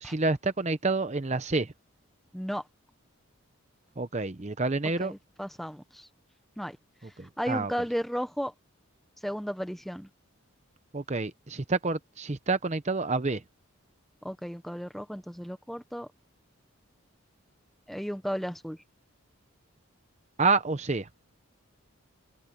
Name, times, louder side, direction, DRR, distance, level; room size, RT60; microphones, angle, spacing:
voice 1, 0.0-1.7 4.0-5.1 7.2-7.7 10.9-13.4 20.4-21.1, right 3 dB, 30° right, 0.7 m, -28 dB
voice 2, 2.3-2.7 5.0-6.1 6.6-6.8 7.0-8.5 9.2-10.1 14.2-16.1 17.9-18.8, equal, ahead, 0.9 m, -34 dB
open air
head